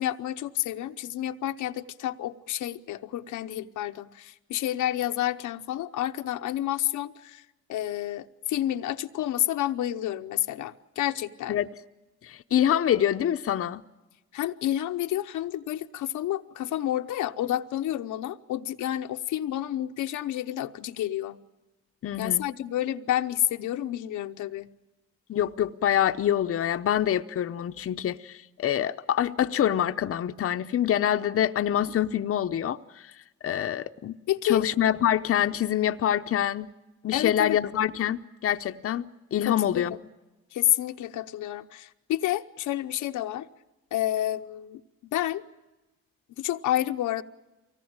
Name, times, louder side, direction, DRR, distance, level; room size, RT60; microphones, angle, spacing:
voice 1, 0.0-7.4 7.7-11.6 14.3-21.4 22.2-24.7 34.3-34.6 37.1-37.6 39.4-39.8 40.5-43.5 43.9-44.8 45.1-45.4 46.4-47.2, left 13 dB, 80° left, 0.9 m, -29 dB
voice 2, 12.2-13.8 22.0-22.5 25.3-33.1 33.4-34.2 34.4-36.7 37.0-40.0, left 10 dB, 50° left, 0.7 m, -26 dB
24.0 x 18.5 x 8.8 m
cardioid pair, 90°, 30 cm